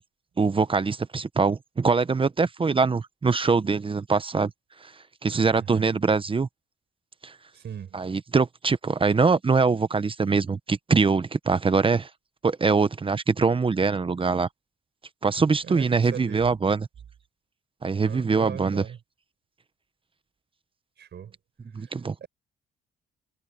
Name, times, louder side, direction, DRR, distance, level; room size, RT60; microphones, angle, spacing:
voice 1, 0.4-4.5 5.2-6.5 7.2-7.3 7.9-12.1 12.4-14.5 15.2-16.9 17.8-18.8 21.7-22.1, right 4 dB, 25° right, 0.9 m, -23 dB
voice 2, 5.5-5.9 7.5-8.0 15.6-16.5 18.0-19.0 21.0-21.4 22.2-22.3, right 8 dB, 60° right, 5.6 m, -38 dB
cardioid pair, 90°, 20 cm